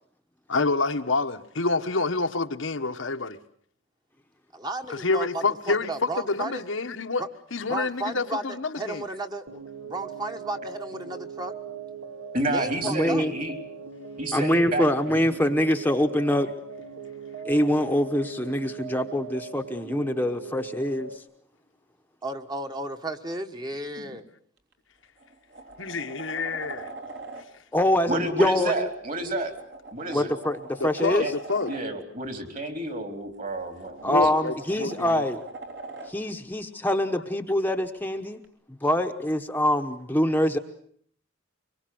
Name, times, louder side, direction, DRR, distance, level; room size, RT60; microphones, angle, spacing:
voice 1, 0.5-3.4 4.9-7.2 7.5-9.1 25.8-26.9 30.8-31.7 34.0-35.2 36.5-36.6, left 3 dB, 90° left, 1.3 m, -28 dB
voice 2, 4.5-6.6 7.2-7.3 7.7-11.5 12.5-13.2 22.2-24.2, right 2 dB, 20° right, 1.4 m, -34 dB
sound 1, 9.5-21.2, right 5 dB, 85° right, 2.3 m, -40 dB
voice 3, 12.3-13.5 14.2-14.9 15.1-15.3 24.0-24.2 28.1-29.5 29.9-30.3 31.2-31.3 31.7-34.3, right 1 dB, 45° right, 3.7 m, -30 dB
voice 4, 12.9-13.3 14.3-16.5 17.4-21.2 27.7-28.9 30.1-31.2 34.0-35.4 36.1-38.4 38.8-40.6, left 1 dB, 10° left, 1.0 m, -24 dB
sound 2, 24.6-24.7 25.2-27.5 29.1-31.9 33.3-36.2 38.4-38.5, right 3 dB, 65° right, 3.3 m, -42 dB
25.0 x 22.5 x 7.8 m
head